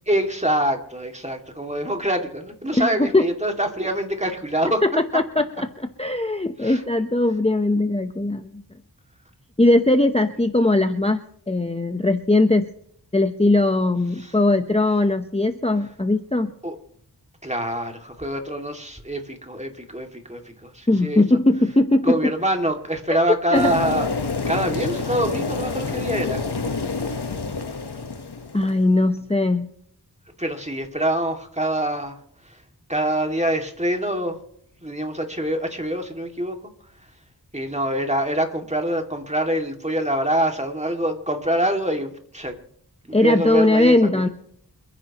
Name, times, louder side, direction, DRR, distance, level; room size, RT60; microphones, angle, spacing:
voice 1, 0.1-4.8 6.6-6.8 14.2-14.4 16.6-16.8 17.4-21.2 22.0-24.1 24.5-26.5 30.4-32.2 32.4-32.6 32.9-34.4 34.8-36.6 37.5-42.6 43.1-44.2, right 1 dB, 15° right, 4 dB, 2.3 m, -25 dB
voice 2, 2.8-3.2 4.8-5.7 6.0-8.6 9.6-12.7 13.1-16.5 20.9-22.2 23.1-23.2 23.5-23.8 28.5-29.7 43.1-44.3, left 2 dB, 15° left, 7 dB, 0.9 m, -19 dB
sound 1, 23.5-28.9, left 4 dB, 75° left, 1.2 m, -28 dB
28.0 x 10.5 x 3.0 m, 0.68 s
wide cardioid pair, 40°, 40 cm